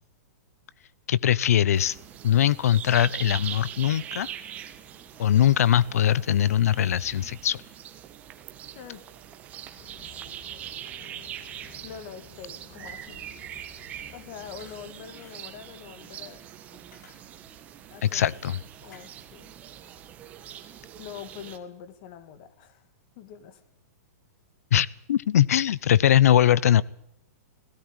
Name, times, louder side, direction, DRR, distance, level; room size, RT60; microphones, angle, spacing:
voice 1, 1.1-2.0 2.2-4.3 5.2-7.6 18.0-18.6 24.7-26.8, left 11 dB, 65° left, 0.8 m, -21 dB
sound 1, 1.7-21.6, right 10 dB, 15° right, 1.4 m, -42 dB
sound 2, 9.8-14.9, left 5 dB, 50° left, 7.4 m, -53 dB
voice 2, 11.8-13.3 14.1-16.4 17.9-18.4 18.8-19.5 21.0-22.8 23.2-23.6, left 8 dB, 35° left, 2.3 m, -44 dB
sound 3, 12.8-13.1 14.5-14.8 15.1-15.4 16.7-17.6 18.8-19.0, left 5 dB, 85° left, 5.5 m, -53 dB
17.5 x 17.0 x 9.1 m
hypercardioid pair, 170°, 9 cm